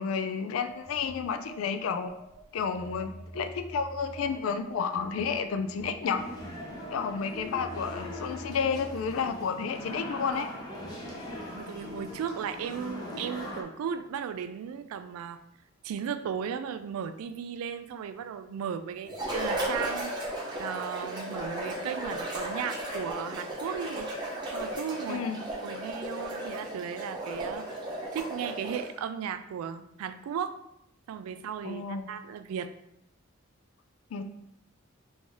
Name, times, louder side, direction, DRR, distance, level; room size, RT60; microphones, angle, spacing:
voice 1, 0.0-2.1 2.5-6.2 6.9-10.5 25.1-25.4 31.6-32.1 34.1-34.2, left 6 dB, 75° left, 8 dB, 0.3 m, -31 dB
Telephone, 0.7-9.3, right 2 dB, 65° right, 0.7 m, -46 dB
sound 1, 6.0-13.6, left 1 dB, 20° left, 0.6 m, -40 dB
voice 2, 11.5-15.4 15.8-24.1 24.5-25.3 25.6-27.6 28.1-30.6 31.1-32.7, right 7 dB, 90° right, 14 dB, 0.3 m, -36 dB
sound 2, 19.1-29.0, right 1 dB, 20° right, 0.7 m, -35 dB
3.2 x 2.6 x 3.5 m, 0.80 s
head